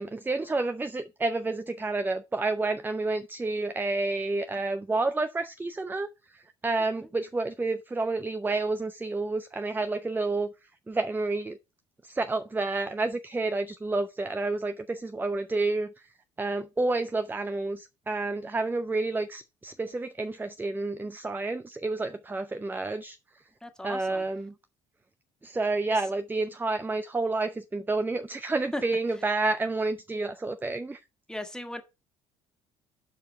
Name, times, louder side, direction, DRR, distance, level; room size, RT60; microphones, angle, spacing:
voice 1, 0.0-10.5 10.9-11.6 12.0-15.9 16.4-23.2 23.8-24.5 25.4-31.0, right 3 dB, 15° right, 0.6 m, -29 dB
voice 2, 23.6-24.3 25.9-26.0 28.7-28.8 31.3-31.8, left 1 dB, 5° left, 1.8 m, -37 dB
7.7 x 4.7 x 5.4 m
hypercardioid pair, 60°, 15 cm